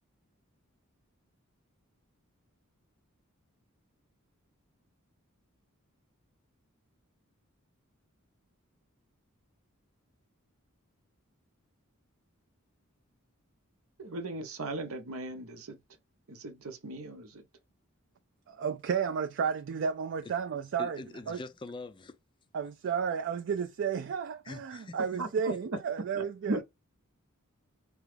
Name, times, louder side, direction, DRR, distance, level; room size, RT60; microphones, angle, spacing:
voice 1, 14.0-15.8 16.3-17.4 25.2-25.5 26.2-26.6, right 2 dB, 80° right, 0.8 m, -37 dB
voice 2, 18.5-21.0 21.3-21.4 22.5-26.6, right 6 dB, 60° right, 0.4 m, -32 dB
voice 3, 20.8-22.2 24.4-25.0 25.5-25.6, left 3 dB, 25° left, 0.3 m, -43 dB
4.7 x 2.3 x 3.3 m
head